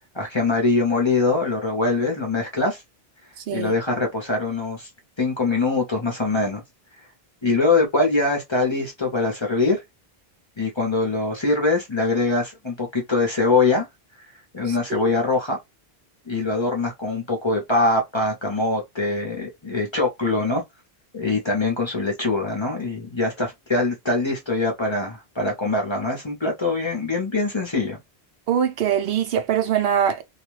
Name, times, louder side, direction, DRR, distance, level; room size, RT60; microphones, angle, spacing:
voice 1, 0.1-2.8 3.5-4.9 5.2-6.6 7.4-9.8 10.6-13.9 14.5-15.6 16.3-20.6 21.1-28.0, left 3 dB, 35° left, 0.6 m, -23 dB
voice 2, 28.5-30.2, right 8 dB, 70° right, 0.8 m, -22 dB
2.4 x 2.2 x 3.1 m
omnidirectional pair, 1.1 m